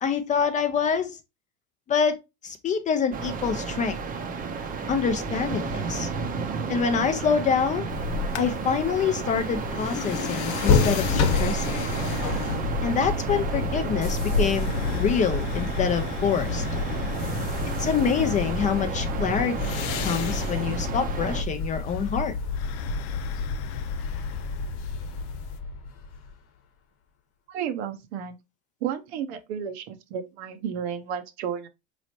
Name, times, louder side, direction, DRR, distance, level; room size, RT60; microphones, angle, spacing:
voice 1, 0.0-1.2 1.9-2.2 2.4-4.0 4.9-6.1 6.7-7.9 8.4-11.8 12.8-16.6 17.8-22.3, left 6 dB, 20° left, 0.4 m, -26 dB
sound 1, 3.1-21.4, right 5 dB, 25° right, 0.6 m, -32 dB
sound 2, 7.9-25.6, left 6 dB, 70° left, 0.6 m, -35 dB
sound 3, 10.7-26.4, left 4 dB, 45° left, 1.0 m, -30 dB
voice 2, 27.5-28.4 28.8-31.7, right 8 dB, 70° right, 0.8 m, -32 dB
4.0 x 3.1 x 2.7 m
supercardioid pair, 120°, 34 cm